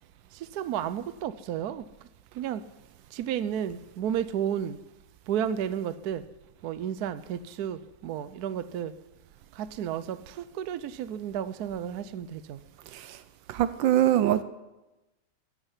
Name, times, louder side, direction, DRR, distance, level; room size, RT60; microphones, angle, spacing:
voice 1, 0.5-1.8 2.4-2.6 3.1-4.8 5.3-6.2 6.6-8.9 9.6-10.2 10.6-12.6, right 9 dB, 65° right, 13 dB, 1.0 m, -32 dB
voice 2, 13.5-14.4, right 12 dB, 80° right, 13 dB, 1.4 m, -23 dB
15.0 x 8.9 x 9.8 m, 1.0 s
omnidirectional pair, 2.0 m